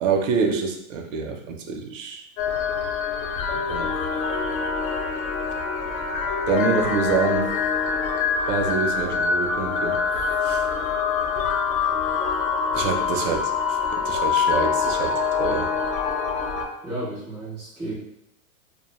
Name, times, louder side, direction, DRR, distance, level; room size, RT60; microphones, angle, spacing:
voice 1, 0.0-2.3 3.5-3.9 6.5-7.5 8.5-10.0 10.4-10.6 12.7-15.7, right 5 dB, 65° right, 3 dB, 0.5 m, -26 dB
sound 1, 2.4-16.7, left 5 dB, 75° left, 0.6 m, -25 dB
voice 2, 16.8-17.9, right 1 dB, ahead, -13 dB, 0.4 m, -33 dB
2.4 x 2.2 x 2.9 m, 0.79 s
supercardioid pair, 160°, 42 cm